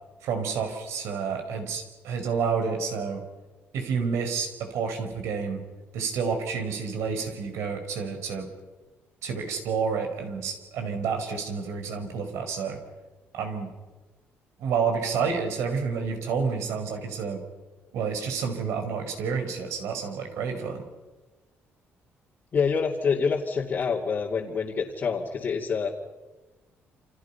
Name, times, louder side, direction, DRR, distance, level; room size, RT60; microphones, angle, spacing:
voice 1, 0.2-3.2 3.7-5.6 5.9-8.5 9.2-12.8 13.3-13.7 14.6-17.4 17.9-20.8, right 5 dB, 90° right, 5 dB, 5.2 m, -29 dB
voice 2, 22.5-25.9, left 5 dB, 40° left, -2 dB, 2.4 m, -26 dB
28.5 x 27.5 x 5.7 m, 1.2 s
cardioid pair, 140°, 5 cm